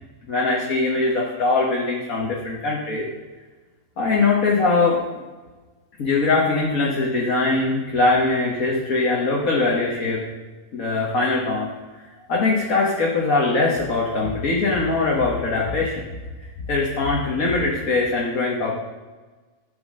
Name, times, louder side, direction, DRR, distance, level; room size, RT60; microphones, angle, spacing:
voice 1, 0.3-3.1 4.0-5.0 6.0-10.2 10.7-11.7 12.3-15.9 16.7-18.7, left 3 dB, 65° left, -3 dB, 1.9 m, -21 dB
14.5 x 6.2 x 6.3 m, 1.3 s
omnidirectional pair, 1.6 m